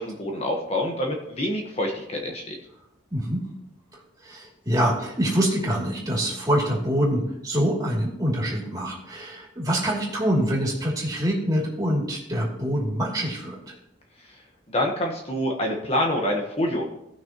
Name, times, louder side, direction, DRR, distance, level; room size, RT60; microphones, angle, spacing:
voice 1, 0.0-2.6 14.7-16.8, left 1 dB, 35° left, 1 dB, 1.1 m, -26 dB
voice 2, 3.1-3.5 3.9-13.8, equal, 20° right, -3 dB, 2.6 m, -25 dB
17.5 x 6.2 x 2.9 m, 0.81 s
head